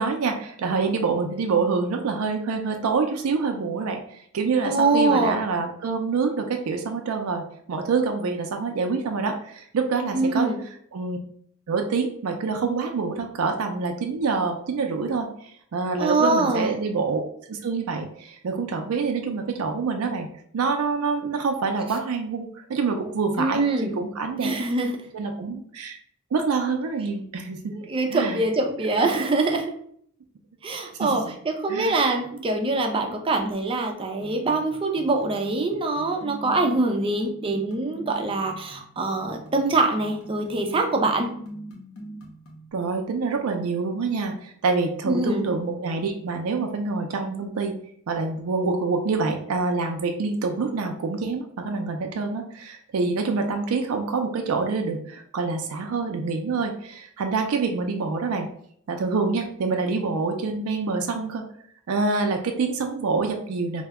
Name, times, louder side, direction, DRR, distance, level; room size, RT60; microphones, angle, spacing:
voice 1, 0.0-7.4 7.7-10.5 10.9-11.2 11.7-17.2 17.5-20.3 20.5-24.5 25.1-26.0 26.3-27.7 28.1-28.4 29.0-29.1 31.0-31.2 31.7-32.0 42.7-47.7 48.1-58.5 58.9-61.5 61.9-63.8, right 4 dB, 85° right, 4 dB, 0.4 m, -26 dB
voice 2, 4.6-5.4 10.1-10.6 16.0-16.7 23.4-24.0 24.4-24.9 27.7-29.8 30.6-41.3 45.1-45.4, right 2 dB, 25° right, 3 dB, 0.4 m, -24 dB
sound 1, 34.2-42.7, right 1 dB, 70° left, 0.7 m, -41 dB
2.7 x 2.1 x 3.5 m, 0.63 s
head